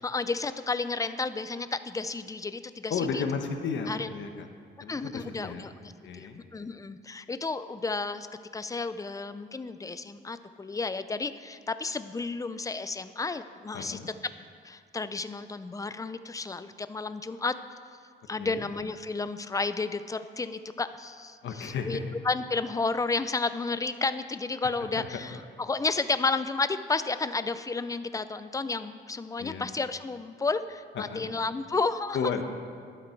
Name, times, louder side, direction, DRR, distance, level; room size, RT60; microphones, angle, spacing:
voice 1, 0.0-3.2 3.9-4.5 4.9-8.3 8.5-14.0 14.6-17.5 18.3-22.0 22.2-32.2, left 3 dB, 15° left, 12 dB, 0.5 m, -32 dB
voice 2, 2.9-4.5 4.8-5.7 6.0-6.4 13.7-14.1 18.4-18.7 21.4-22.1 24.6-25.4 29.4-29.7 30.9-31.3 32.1-32.4, left 5 dB, 75° left, 5 dB, 1.3 m, -34 dB
12.0 x 11.5 x 4.6 m, 2.1 s
cardioid pair, 110°, 19 cm